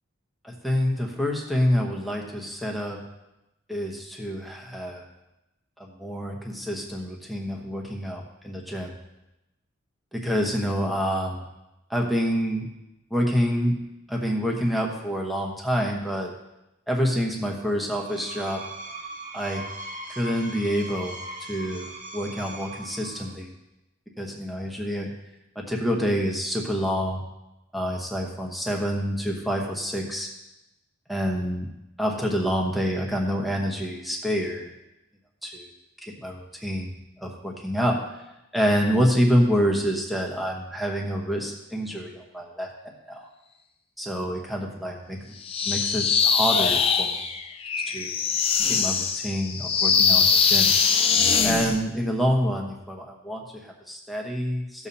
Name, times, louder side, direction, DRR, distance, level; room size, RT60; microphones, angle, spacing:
voice 1, 0.4-3.0 3.7-5.1 5.8-9.0 10.1-11.5 11.9-12.7 13.1-13.8 14.1-16.3 16.9-18.6 19.3-19.6 20.1-21.2 21.5-23.5 24.2-25.1 25.5-27.2 27.7-30.3 31.1-31.7 32.0-34.7 35.4-35.7 36.0-38.0 38.5-42.7 43.1-43.3 44.0-45.2 45.6-47.2 47.9-48.1 48.6-50.7 51.4-54.9, equal, ahead, -1 dB, 1.1 m, -27 dB
Screech, 17.9-23.4, right 1 dB, 40° right, 1.0 m, -39 dB
sound 1, 45.4-51.8, left 6 dB, 30° left, 0.6 m, -22 dB
16.0 x 7.1 x 2.8 m, 0.93 s
head